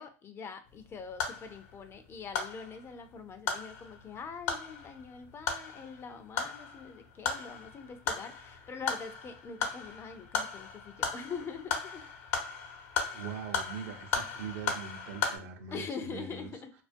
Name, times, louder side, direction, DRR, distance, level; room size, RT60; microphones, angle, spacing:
voice 1, 0.0-12.1 15.7-16.7, left 5 dB, 30° left, 0.4 m, -43 dB
sound 1, 0.7-15.4, left 6 dB, 70° left, 0.7 m, -37 dB
voice 2, 13.1-16.5, right 7 dB, 70° right, 0.5 m, -42 dB
2.3 x 2.2 x 2.5 m
hypercardioid pair, 95°, 8 cm